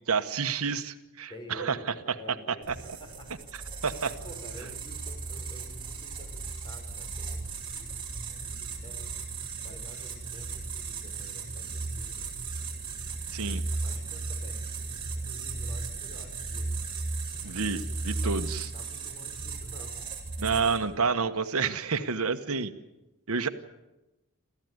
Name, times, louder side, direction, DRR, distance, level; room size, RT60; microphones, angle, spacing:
voice 1, 0.1-1.8 2.7-2.8 3.8-4.1 13.3-13.6 17.4-18.7 20.4-22.7 23.3-23.5, right 5 dB, 80° right, 9 dB, 1.2 m, -29 dB
voice 2, 1.3-3.6 4.0-7.4 7.7-9.1 9.6-12.3 13.8-14.6 15.2-16.7 18.2-20.0, equal, 20° left, 3 dB, 5.7 m, -49 dB
sound 1, 2.6-21.0, right 4 dB, 25° right, 4.2 m, -36 dB
27.5 x 14.5 x 9.5 m, 0.99 s
head